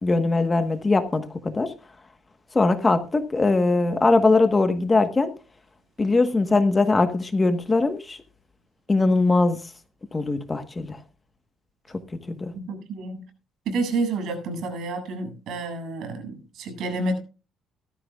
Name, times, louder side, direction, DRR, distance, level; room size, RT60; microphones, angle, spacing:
voice 1, 0.0-1.7 2.5-5.3 6.0-8.2 8.9-9.6 10.1-11.0 12.3-12.5, left 3 dB, 15° left, 9 dB, 1.3 m, -21 dB
voice 2, 12.5-13.2 13.7-17.2, right 2 dB, 60° right, 5 dB, 7.7 m, -29 dB
19.0 x 14.0 x 2.4 m, 0.33 s
cardioid pair, 165°, 0 cm